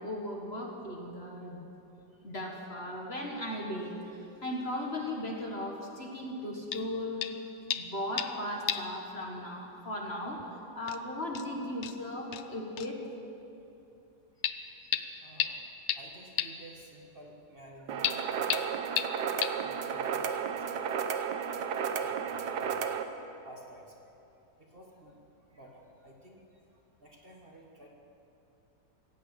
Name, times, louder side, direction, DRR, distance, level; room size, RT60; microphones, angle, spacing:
voice 1, 0.0-1.7 2.2-7.2 7.7-13.0, left 1 dB, 40° left, 0 dB, 1.8 m, -37 dB
sound 1, 6.7-6.9 7.2-7.4 7.7-8.4 8.7-8.9 9.2-9.3 10.4-10.5 10.9-11.0 11.3-11.5 11.8-12.0 12.3-12.4 12.8-12.9 14.4-14.5 14.9-15.0 15.4-15.5 15.9-16.0 16.4-16.5 18.0-18.1 18.5-18.6 19.0-19.1 19.4-19.5, left 10 dB, 70° left, 0.6 m, -31 dB
voice 2, 15.2-15.6 15.9-18.7 19.0-19.3 19.6-21.0 22.0-22.8 23.4-24.0 24.6-25.2 25.5-26.6 27.0-27.9, right 1 dB, 35° right, -1 dB, 1.6 m, -53 dB
sound 2, 17.9-23.0, right 7 dB, 75° right, 1.4 m, -33 dB
16.5 x 9.2 x 8.5 m, 2.9 s
omnidirectional pair, 1.8 m